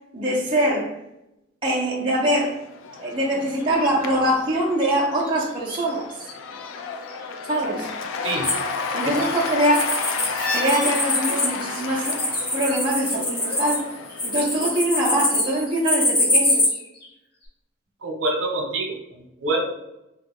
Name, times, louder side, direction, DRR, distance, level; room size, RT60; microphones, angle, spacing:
voice 1, 0.1-0.9 1.6-2.6 3.0-6.2 7.4-7.9 8.9-10.0 10.5-12.2 12.5-13.9 14.2-16.8, right 1 dB, 25° right, -4 dB, 0.5 m, -23 dB
Cheering / Applause / Crowd, 2.3-15.7, left 5 dB, 85° left, 0.3 m, -32 dB
sound 1, 3.6-6.3 6.6-7.6 7.9-13.8 14.1-17.1 17.4-17.5, left 1 dB, 50° left, 0.7 m, -37 dB
sound 2, 8.4-10.3 10.6-16.7, left 1 dB, 25° left, 1.2 m, -24 dB
voice 2, 18.0-19.6, right 2 dB, 80° right, 1 dB, 0.7 m, -26 dB
2.9 x 2.3 x 3.5 m, 0.88 s
head